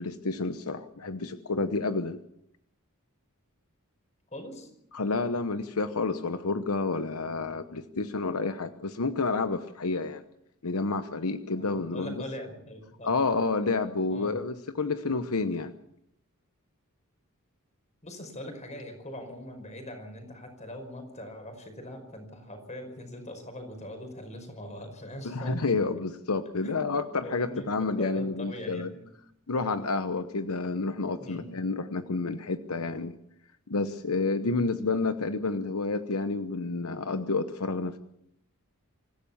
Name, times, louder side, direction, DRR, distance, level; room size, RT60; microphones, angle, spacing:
voice 1, 0.0-2.2 4.9-10.2 10.6-12.2 13.0-15.7 25.2-28.9 29.5-33.2 33.7-38.0, left 3 dB, 75° left, 10 dB, 1.0 m, -29 dB
voice 2, 4.3-4.7 11.6-13.1 14.1-14.4 18.0-25.8 26.6-29.0 31.2-31.6, left 1 dB, 30° left, 6 dB, 5.4 m, -41 dB
25.5 x 15.5 x 7.2 m, 0.76 s
head